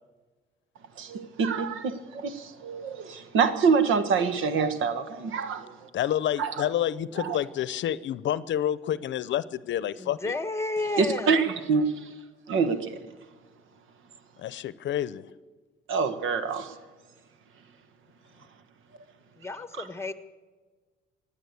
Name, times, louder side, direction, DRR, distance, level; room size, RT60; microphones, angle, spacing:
voice 1, 1.0-5.9 6.4-6.5 7.2-7.4 11.0-12.1 12.5-12.9 15.9-16.7 19.8-19.9, right 5 dB, 80° right, 1.4 m, -26 dB
voice 2, 5.9-10.4 14.4-15.3, left 11 dB, 70° left, 0.7 m, -29 dB
voice 3, 10.0-11.6 19.4-20.1, left 2 dB, 15° left, 1.3 m, -32 dB
16.0 x 9.8 x 8.4 m
cardioid pair, 90°, 20 cm